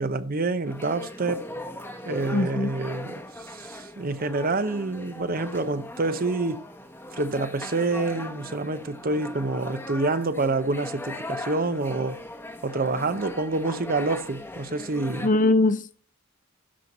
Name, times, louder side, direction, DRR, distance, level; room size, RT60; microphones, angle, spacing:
voice 1, 0.0-1.5 2.0-6.6 7.2-12.2 12.6-15.3, right 3 dB, 45° right, 0.8 m, -27 dB
sound 1, 0.6-15.3, left 1 dB, 10° left, 1.1 m, -39 dB
voice 2, 2.3-2.7 15.2-15.9, left 2 dB, 40° left, 0.7 m, -21 dB
12.5 x 4.5 x 5.3 m
head